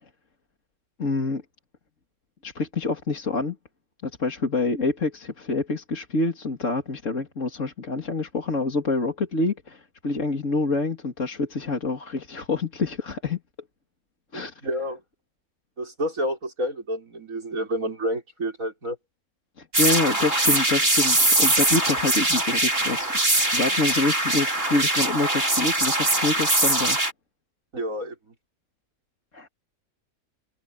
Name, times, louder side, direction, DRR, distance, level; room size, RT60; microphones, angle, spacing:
voice 1, 1.0-1.4 2.4-3.6 4.0-13.4 14.3-14.5 19.6-23.1 23.5-27.0 29.3-29.5, left 3 dB, 60° left, 2.9 m, -26 dB
voice 2, 14.6-15.0 15.8-19.0 27.7-28.3, equal, 70° right, 6.6 m, -29 dB
sound 1, 19.7-27.1, right 1 dB, 40° right, 5.4 m, -22 dB
omnidirectional pair, 1.5 m